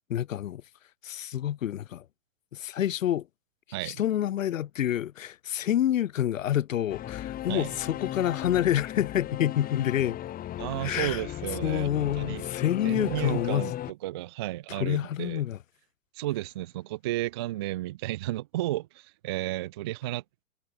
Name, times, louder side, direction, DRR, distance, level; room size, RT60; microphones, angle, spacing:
voice 1, 0.1-0.6 1.0-2.0 2.5-3.3 3.8-10.2 10.8-11.2 11.6-13.6 14.7-15.6, left 11 dB, 65° left, 2.3 m, -28 dB
Singing / Musical instrument, 6.9-13.9, left 12 dB, 20° left, 1.3 m, -36 dB
voice 2, 10.6-12.5 12.8-15.4 16.1-20.4, right 16 dB, 20° right, 0.3 m, -33 dB
hypercardioid pair, 120°, 42 cm